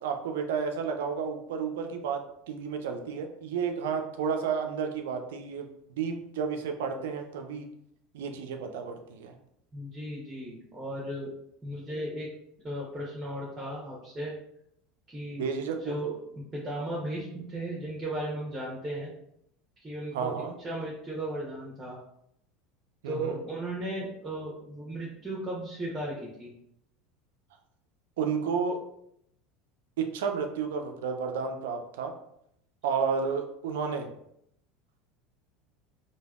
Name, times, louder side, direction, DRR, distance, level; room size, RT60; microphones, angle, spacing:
voice 1, 0.0-5.7 6.0-7.7 8.1-9.3 15.4-15.9 20.1-20.5 23.0-23.4 28.2-28.8 30.0-32.1 32.8-34.1, right 6 dB, 70° right, 5 dB, 0.3 m, -31 dB
voice 2, 9.7-11.3 11.6-12.3 12.6-14.3 15.1-15.5 15.8-16.2 16.5-19.1 19.8-22.0 23.0-26.5, right 1 dB, 15° right, -5 dB, 0.9 m, -36 dB
3.2 x 2.2 x 2.3 m, 0.74 s
hypercardioid pair, 75°, 0 cm